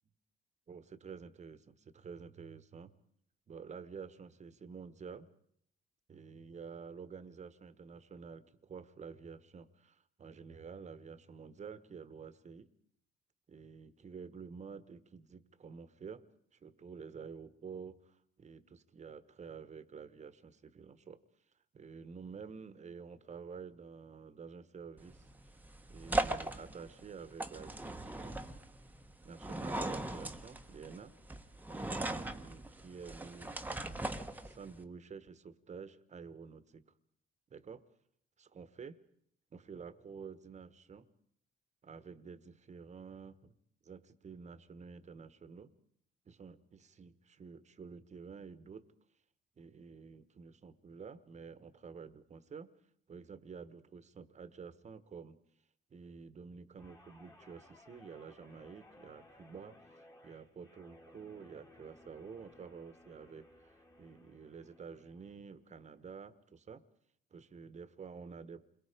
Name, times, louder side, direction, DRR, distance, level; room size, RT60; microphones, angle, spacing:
voice 1, 0.7-2.9 3.5-5.3 6.1-12.7 13.5-16.2 16.5-21.2 21.7-25.3 25.9-28.4 29.2-31.1 31.7-33.5 34.4-36.8 37.5-37.8 38.4-38.9 39.5-41.1 41.8-43.5 43.8-45.7 46.2-48.9 49.6-52.7 53.1-55.4 55.9-66.8 67.3-68.6, right 5 dB, 35° right, 14 dB, 1.3 m, -50 dB
sound 1, 25.0-34.8, right 1 dB, 10° right, 1.2 m, -39 dB
Guitar, 56.8-65.4 65.8-66.1, left 1 dB, 15° left, 2.1 m, -61 dB
29.0 x 22.0 x 5.2 m, 0.67 s
cardioid pair, 100°, 20 cm